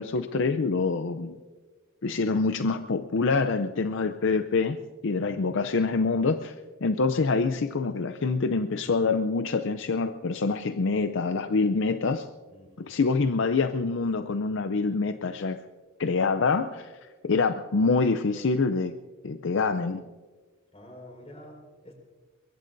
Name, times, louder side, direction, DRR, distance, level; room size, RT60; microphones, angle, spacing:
voice 1, 0.0-1.4 2.0-4.8 5.0-6.5 6.8-12.3 12.8-15.6 16.0-18.9 19.2-20.0, left 4 dB, 65° left, 9 dB, 0.6 m, -26 dB
voice 2, 12.5-12.9 20.7-21.9, left 1 dB, 30° left, 1 dB, 4.9 m, -48 dB
22.5 x 22.5 x 2.7 m, 1.4 s
head